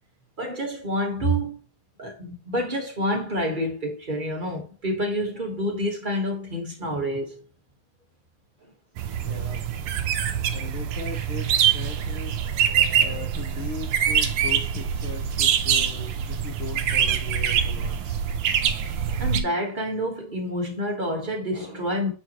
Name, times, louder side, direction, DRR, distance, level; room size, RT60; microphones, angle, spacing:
voice 1, 0.4-1.6 2.0-7.4 19.2-22.1, equal, 30° right, 0.8 m, -28 dB
sound 1, 9.0-19.4, right 8 dB, 75° right, 1.3 m, -24 dB
voice 2, 9.2-9.7 10.5-12.4 13.0-18.2, left 5 dB, 55° left, 1.8 m, -38 dB
8.2 x 4.7 x 3.0 m
omnidirectional pair, 3.3 m